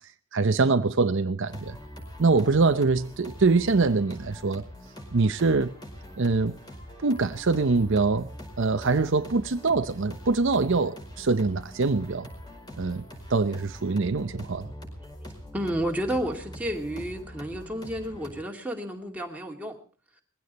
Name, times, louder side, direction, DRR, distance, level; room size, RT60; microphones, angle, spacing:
voice 1, 0.3-1.8 2.2-4.7 5.1-5.7 6.2-6.6 7.0-8.3 8.6-12.3 12.8-13.0 13.3-14.7, right 3 dB, 60° right, 0.7 m, -24 dB
sound 1, 1.5-18.3, equal, 20° left, 5.1 m, -43 dB
voice 2, 15.5-19.8, right 1 dB, 5° right, 2.5 m, -31 dB
21.0 x 16.0 x 4.2 m
head